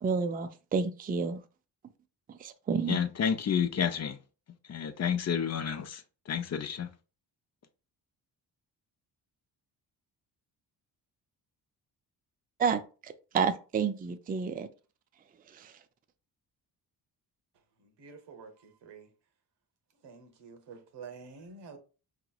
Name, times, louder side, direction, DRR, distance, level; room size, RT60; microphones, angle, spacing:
voice 1, 0.0-1.4 2.4-3.0 12.6-14.7 15.5-15.7, right 5 dB, 25° right, 0.4 m, -30 dB
voice 2, 2.9-4.2 4.7-6.9, left 8 dB, 40° left, 0.5 m, -30 dB
voice 3, 18.0-18.5 18.8-19.0 20.0-21.8, right 5 dB, 85° right, 1.0 m, -48 dB
4.9 x 2.9 x 2.3 m
cardioid pair, 95°, 41 cm